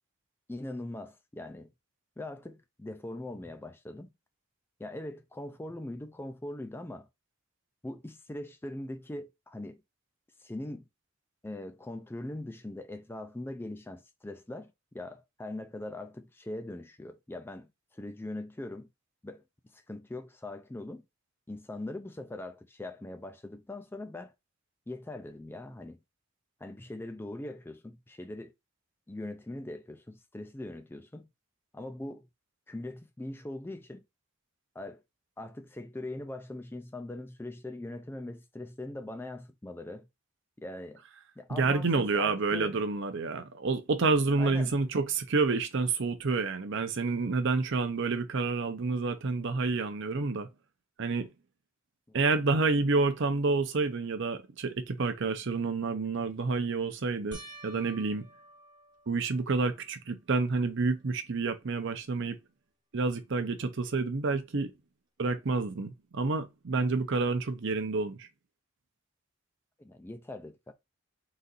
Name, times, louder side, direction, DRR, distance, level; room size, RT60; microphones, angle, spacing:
voice 1, 0.5-1.7 2.2-4.1 4.8-7.1 7.8-9.8 10.4-10.9 11.4-18.9 19.2-19.4 19.7-21.0 21.5-24.3 24.9-26.0 26.6-28.5 29.1-31.3 31.7-32.3 32.7-34.0 34.7-35.0 35.4-40.1 40.6-41.0 41.4-42.8 44.4-44.8 69.8-70.7, left 1 dB, 10° left, 0.3 m, -41 dB
voice 2, 41.5-50.5 51.0-51.3 52.1-58.3 59.1-62.4 62.9-64.7 65.2-68.3, right 3 dB, 55° right, 0.6 m, -29 dB
sound 1, 57.3-59.9 60.5-61.1 61.4-61.5 64.7-64.8, right 2 dB, 20° right, 0.7 m, -51 dB
4.0 x 2.6 x 3.9 m
head